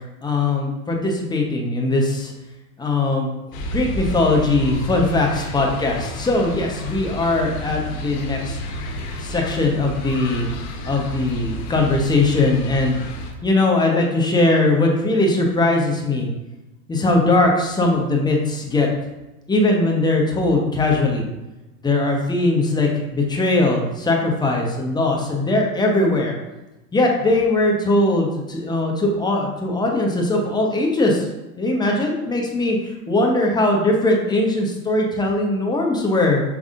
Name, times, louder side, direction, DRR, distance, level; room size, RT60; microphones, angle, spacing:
voice 1, 0.2-2.3 2.8-3.3 3.7-8.6 9.2-10.5 10.8-13.0 13.4-16.3 16.9-18.9 19.5-21.3 21.8-26.3 26.9-31.3 31.6-32.8 33.1-36.4, left 2 dB, 10° left, 0 dB, 0.8 m, -20 dB
sound 1, 3.5-13.3, equal, 50° left, 1.1 m, -31 dB
5.4 x 3.5 x 2.5 m, 1.0 s
hypercardioid pair, 95°, 47 cm